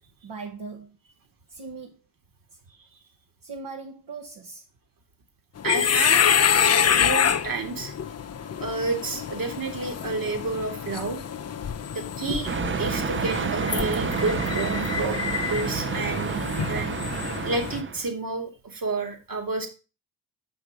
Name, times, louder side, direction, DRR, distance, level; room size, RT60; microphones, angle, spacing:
voice 1, 0.2-1.0 1.5-2.0 3.4-4.6, right 4 dB, 70° right, 1.2 m, -39 dB
sound 1, 5.6-17.8, left 8 dB, 35° left, 0.6 m, -26 dB
voice 2, 5.6-6.3 6.6-7.9 8.6-11.2 11.9-12.5 12.8-15.2 15.4-17.0 17.4-19.7, right 3 dB, 50° right, 1.9 m, -30 dB
sound 2, 12.4-18.1, right 6 dB, 30° right, 0.6 m, -29 dB
6.0 x 5.3 x 4.9 m
supercardioid pair, 45°, 42 cm